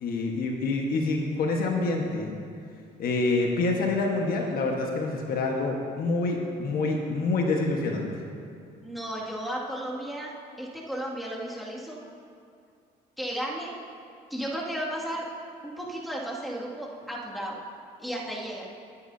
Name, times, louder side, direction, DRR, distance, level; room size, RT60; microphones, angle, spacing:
voice 1, 0.0-2.3 3.0-8.1, left 3 dB, 60° left, 0 dB, 1.4 m, -27 dB
voice 2, 8.8-12.0 13.2-13.7 14.3-15.2 15.6-17.6 18.0-18.7, right 1 dB, ahead, -5 dB, 2.2 m, -34 dB
19.5 x 9.8 x 2.8 m, 2.4 s
cardioid pair, 110°, 17 cm